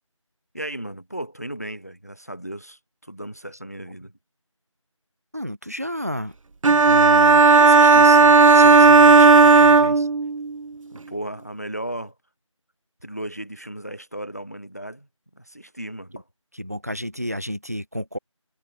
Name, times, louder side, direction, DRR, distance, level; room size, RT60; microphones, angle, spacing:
voice 1, 0.5-4.1 11.1-12.1 13.0-15.1 15.3-16.2, right 1 dB, 30° left, 1.2 m, -35 dB
voice 2, 5.3-6.4 6.9-10.1 16.1-16.2 16.5-18.2, equal, 30° right, 2.1 m, -32 dB
sound 1, 6.6-10.5, right 4 dB, 75° right, 0.4 m, -13 dB
figure-of-eight pair, 180°, 17 cm